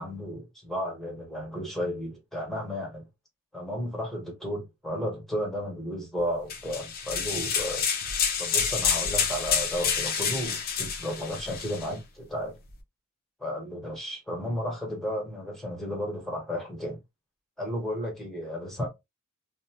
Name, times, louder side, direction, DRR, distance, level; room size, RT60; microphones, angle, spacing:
voice 1, 0.0-3.1 3.5-7.8 8.4-12.6 13.4-17.0 17.6-18.9, equal, ahead, 1.1 m, -33 dB
sound 1, 6.5-11.9, left 7 dB, 45° left, 0.6 m, -28 dB
2.6 x 2.1 x 2.8 m
head